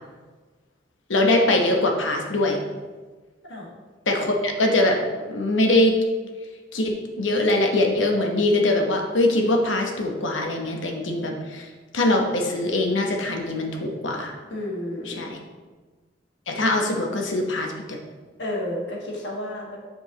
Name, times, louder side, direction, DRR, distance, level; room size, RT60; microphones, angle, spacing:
voice 1, 1.1-2.6 4.1-5.0 5.3-5.9 6.7-11.7 11.9-14.3 15.0-15.4 16.5-18.0, left 1 dB, 90° left, 2 dB, 1.0 m, -22 dB
voice 2, 14.5-15.3 18.4-19.8, left 1 dB, 70° left, -3 dB, 1.6 m, -31 dB
7.7 x 5.3 x 2.9 m, 1.3 s
head